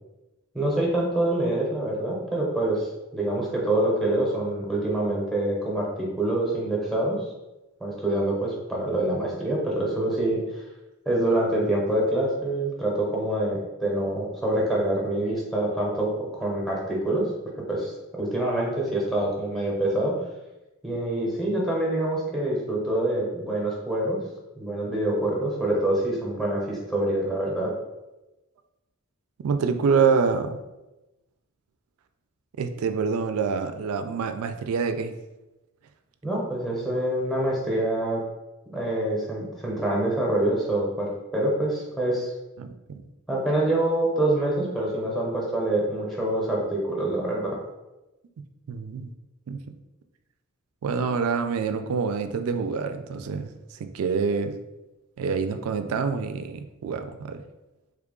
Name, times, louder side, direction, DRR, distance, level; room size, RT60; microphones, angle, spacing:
voice 1, 0.5-7.3 7.8-10.6 11.1-17.3 17.7-17.9 18.2-20.1 20.8-24.2 24.6-27.7 36.2-38.2 38.7-42.3 43.3-47.6, right 1 dB, ahead, -3 dB, 0.7 m, -26 dB
voice 2, 29.4-30.6 32.6-35.1 42.6-43.0 48.7-49.1 49.5-49.6 50.8-54.6 55.2-57.4, right 5 dB, 75° right, 9 dB, 0.3 m, -26 dB
3.3 x 2.3 x 3.6 m, 1.0 s
head